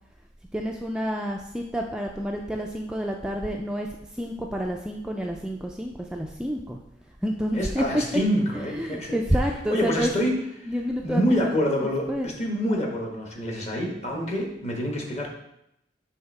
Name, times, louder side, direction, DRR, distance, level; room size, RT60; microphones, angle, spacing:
voice 1, 0.5-3.9 4.1-6.8 7.2-7.9 8.1-8.2 8.5-10.3 10.6-12.3, equal, 5° right, 0 dB, 0.3 m, -29 dB
voice 2, 7.5-9.2 9.7-10.7 11.0-15.3, equal, 35° left, 0 dB, 1.2 m, -27 dB
5.8 x 3.5 x 5.3 m, 0.81 s
head